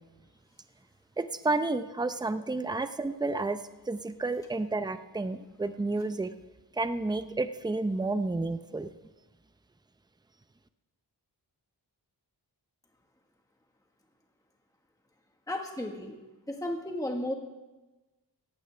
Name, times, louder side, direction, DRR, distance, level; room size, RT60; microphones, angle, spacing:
voice 1, 1.2-3.6 3.9-6.3 6.8-8.9, right 2 dB, 10° right, 10 dB, 0.6 m, -31 dB
voice 2, 15.5-16.2 16.5-17.3, left 1 dB, 10° left, 2 dB, 1.5 m, -34 dB
17.0 x 15.5 x 3.4 m, 1.1 s
wide cardioid pair, 80°, 41 cm